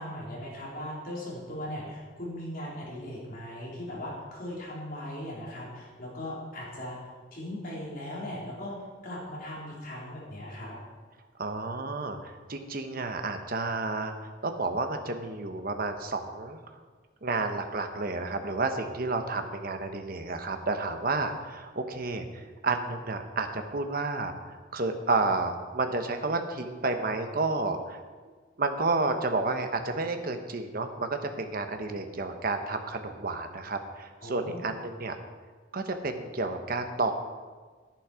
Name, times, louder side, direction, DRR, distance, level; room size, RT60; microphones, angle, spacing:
voice 1, 0.0-10.8 34.2-34.7, left 1 dB, 50° left, -5 dB, 3.8 m, -39 dB
voice 2, 11.4-16.6 17.2-28.0 28.6-35.2 35.7-37.1, right 3 dB, 50° right, 6 dB, 1.1 m, -31 dB
11.0 x 10.5 x 5.0 m, 1.4 s
head